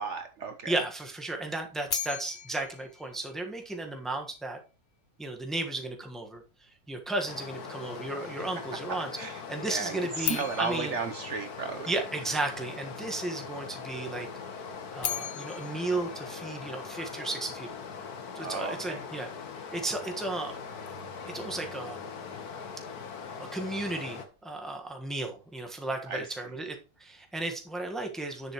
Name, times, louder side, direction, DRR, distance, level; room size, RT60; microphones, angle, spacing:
voice 1, 0.0-0.7 8.2-8.3 8.9-11.9 18.4-19.1 26.1-26.2, right 5 dB, 55° right, 7 dB, 1.0 m, -35 dB
voice 2, 0.7-4.6 5.2-9.1 9.5-10.9 11.9-14.3 14.9-17.7 18.3-19.3 19.7-20.5 21.3-22.1 23.4-28.5, right 2 dB, ahead, 3 dB, 1.1 m, -34 dB
sound 1, 1.9-4.0 10.2-12.4 14.7-17.2, left 12 dB, 70° left, 0.6 m, -38 dB
Stream, 7.3-24.3, left 5 dB, 90° left, 1.7 m, -41 dB
10.5 x 7.1 x 3.0 m, 0.33 s
omnidirectional pair, 1.6 m